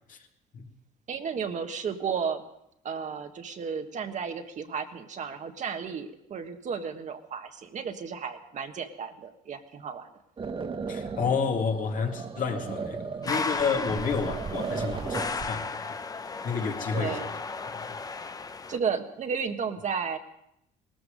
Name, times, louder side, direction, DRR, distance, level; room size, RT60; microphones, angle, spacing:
voice 1, 1.1-2.4 2.8-10.1 16.9-17.4 18.7-20.2, right 6 dB, 45° right, 1.5 m, -33 dB
sound 1, 10.4-15.5, right 5 dB, 30° right, 1.0 m, -36 dB
voice 2, 10.9-16.0 16.4-17.2, left 5 dB, 50° left, 2.2 m, -30 dB
sound 2, 13.2-18.8, left 4 dB, 20° left, 0.7 m, -35 dB
18.5 x 14.0 x 5.2 m
cardioid pair, 110°, 17 cm